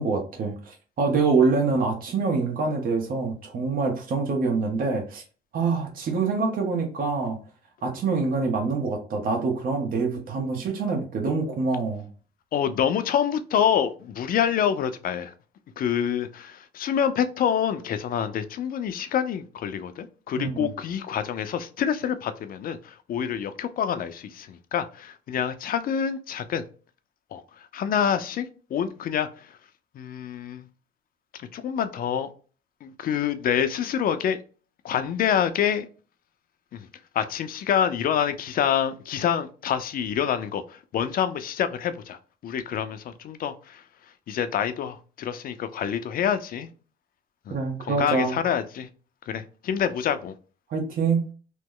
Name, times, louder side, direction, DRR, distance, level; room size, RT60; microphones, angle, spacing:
voice 1, 0.0-5.2 5.5-7.4 7.8-12.1 20.4-20.7 47.5-48.4 50.7-51.2, right 4 dB, 55° right, 1.0 m, -25 dB
voice 2, 12.5-15.3 15.8-26.6 27.3-27.4 27.7-28.4 28.7-29.3 29.9-30.7 31.3-32.3 32.8-34.4 34.8-35.9 36.7-36.9 37.1-43.8 44.3-46.7 47.5-47.6 47.8-48.9 49.3-50.3, left 8 dB, 55° left, 0.5 m, -27 dB
3.0 x 2.1 x 3.7 m
supercardioid pair, 80°, 18 cm